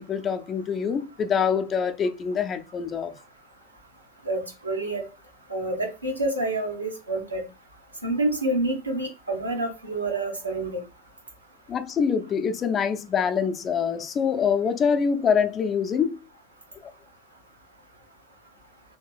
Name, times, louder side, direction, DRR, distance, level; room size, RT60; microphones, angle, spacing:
voice 1, 0.0-3.1 11.7-16.2, left 6 dB, 30° left, 0.5 m, -25 dB
voice 2, 4.2-5.1 5.5-7.4 8.0-10.8, right 2 dB, 90° right, 0.9 m, -28 dB
3.5 x 2.8 x 3.3 m
figure-of-eight pair, 80°, 0 cm